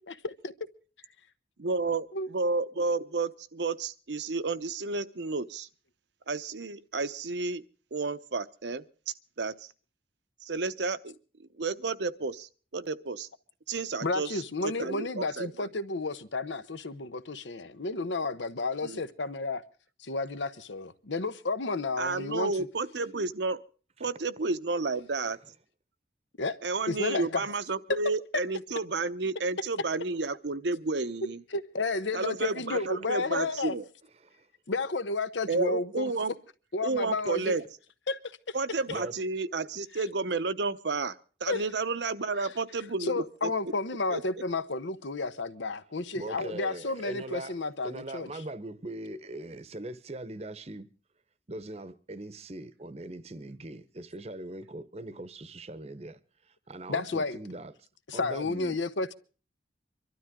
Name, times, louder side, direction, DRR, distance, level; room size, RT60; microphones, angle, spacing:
voice 1, 0.1-0.5 2.1-2.3 14.0-19.6 20.0-22.5 26.4-26.6 26.9-27.4 31.5-33.7 34.7-36.1 36.7-37.5 38.1-38.2 38.5-38.6 41.5-41.6 42.4-42.5 43.0-48.3 56.9-57.4 58.1-59.1, left 3 dB, 80° left, 1.0 m, -32 dB
voice 2, 1.6-2.1 2.3-5.7 6.3-7.6 7.9-8.8 9.4-9.7 10.4-11.1 11.6-13.3 13.7-15.7 18.8-19.0 22.0-23.6 24.0-25.4 26.6-31.4 32.1-33.8 35.5-36.3 36.8-37.6 38.5-43.5 44.1-44.2, right 3 dB, 70° right, 0.8 m, -31 dB
voice 3, 46.1-47.6 47.8-50.9 51.5-56.2 56.4-57.7 58.1-58.8, right 1 dB, 35° right, 0.9 m, -41 dB
25.0 x 12.5 x 3.6 m
head